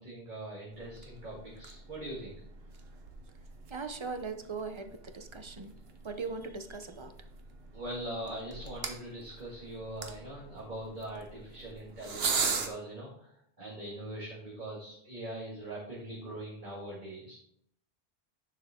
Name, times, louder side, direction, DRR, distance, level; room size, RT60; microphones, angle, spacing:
voice 1, 0.0-2.3 7.7-17.3, right 1 dB, 45° right, -6 dB, 2.3 m, -42 dB
sound 1, 0.7-12.7, right 5 dB, 65° right, 1.2 m, -40 dB
voice 2, 3.7-5.7 6.0-7.3, right 4 dB, 30° right, 8 dB, 0.7 m, -39 dB
10.5 x 7.0 x 3.7 m, 0.71 s
omnidirectional pair, 1.1 m